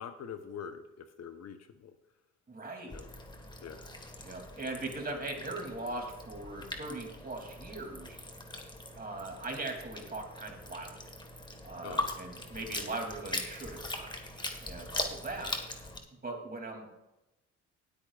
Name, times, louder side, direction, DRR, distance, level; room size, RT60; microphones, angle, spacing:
voice 1, 0.0-1.9 2.9-3.1 3.6-3.9 11.8-12.1, left 7 dB, 60° left, 8 dB, 1.0 m, -44 dB
voice 2, 2.5-2.9 4.2-8.2 8.9-11.0 11.6-15.5 16.2-16.9, right 2 dB, 30° right, 2 dB, 2.9 m, -40 dB
sound 1, 2.9-16.0, left 2 dB, 15° left, 1.6 m, -41 dB
19.5 x 8.7 x 2.5 m, 0.94 s
cardioid pair, 90°, 30 cm